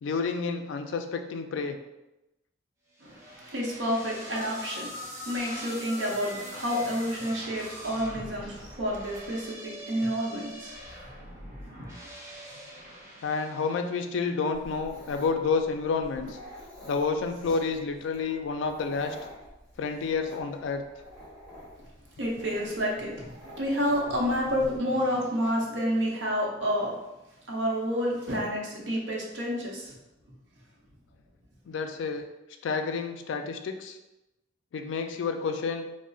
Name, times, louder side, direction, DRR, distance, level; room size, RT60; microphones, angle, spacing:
voice 1, 0.0-1.8 13.2-16.4 16.9-19.2 19.8-20.8 31.7-32.2 32.6-34.0 34.7-35.9, left 4 dB, 75° left, 6 dB, 0.3 m, -29 dB
sound 1, 3.0-14.3, equal, 15° right, 0.7 m, -43 dB
voice 2, 3.0-11.1 11.7-11.8 22.2-26.9 27.5-29.9, equal, 70° right, -2 dB, 0.7 m, -29 dB
Dog, 14.5-24.8, equal, 5° left, 1.3 m, -47 dB
2.3 x 2.0 x 3.8 m, 0.96 s
head